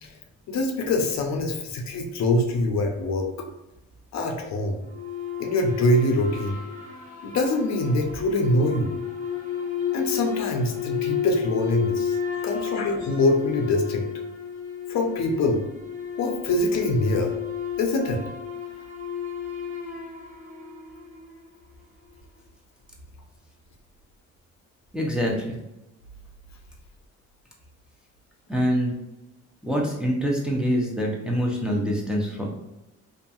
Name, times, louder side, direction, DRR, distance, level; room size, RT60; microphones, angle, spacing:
voice 1, 0.5-3.5 4.1-4.8 5.4-6.6 7.2-9.0 9.9-12.2 12.4-14.1 14.9-15.6 16.2-17.3 17.8-18.2, left 2 dB, 65° left, 3 dB, 0.6 m, -24 dB
sound 1, 4.8-21.4, left 8 dB, 25° right, 0.9 m, -32 dB
voice 2, 24.9-25.6 28.5-28.9 29.6-32.5, equal, 5° right, -3 dB, 0.6 m, -25 dB
2.7 x 2.5 x 2.3 m, 0.97 s
cardioid pair, 90°, 30 cm